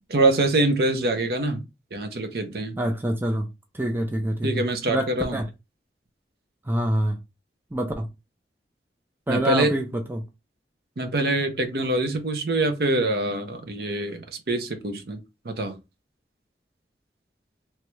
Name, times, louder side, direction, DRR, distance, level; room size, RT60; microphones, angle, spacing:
voice 1, 0.1-1.6 1.9-2.8 4.4-5.4 9.3-9.7 11.0-15.2 15.4-15.8, right 2 dB, 60° right, 0.6 m, -24 dB
voice 2, 2.8-3.5 3.7-4.6 4.9-5.4 6.7-7.2 7.7-8.1 9.3-10.2, right 1 dB, 10° right, 0.3 m, -26 dB
3.0 x 2.3 x 3.1 m
head